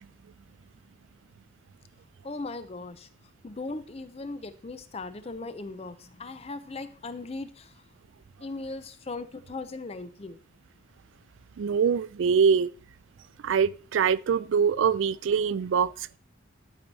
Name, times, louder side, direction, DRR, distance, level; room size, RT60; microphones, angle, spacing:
voice 1, 2.2-3.1 3.4-7.8 8.4-10.4, left 3 dB, 30° left, 0.5 m, -38 dB
voice 2, 11.6-12.7 13.4-16.2, right 6 dB, 70° right, 0.3 m, -24 dB
12.0 x 4.6 x 4.1 m
head